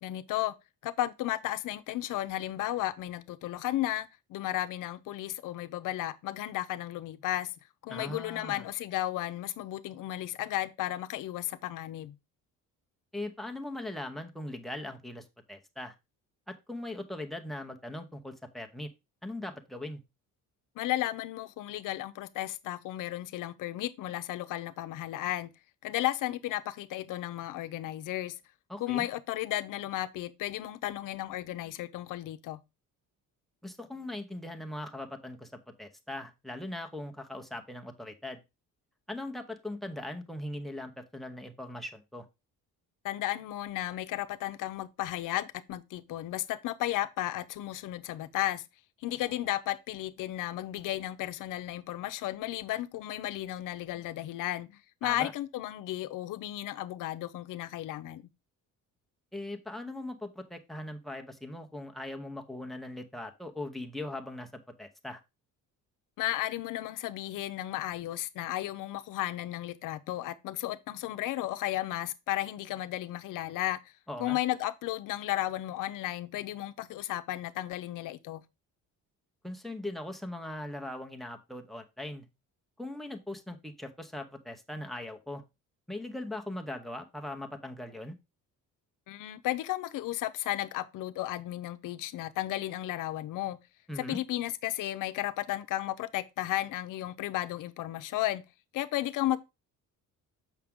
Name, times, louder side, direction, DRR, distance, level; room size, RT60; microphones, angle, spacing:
voice 1, 0.0-0.5 0.8-7.5 7.8-12.1 20.8-25.5 25.8-28.4 28.8-32.6 43.0-48.6 49.0-58.2 66.2-73.9 74.2-78.4 89.1-93.6 94.0-98.4 98.7-99.4, left 14 dB, 70° left, 0.8 m, -34 dB
voice 2, 7.9-8.6 13.1-15.9 16.5-18.9 19.2-20.0 28.7-29.1 33.6-35.5 35.8-38.4 39.1-42.2 55.0-55.3 59.3-64.5 64.8-65.2 74.1-74.4 79.4-82.2 82.8-85.4 85.9-88.1 93.9-94.2, left 1 dB, ahead, 0.8 m, -40 dB
7.4 x 5.9 x 3.6 m
cardioid pair, 175°, 33 cm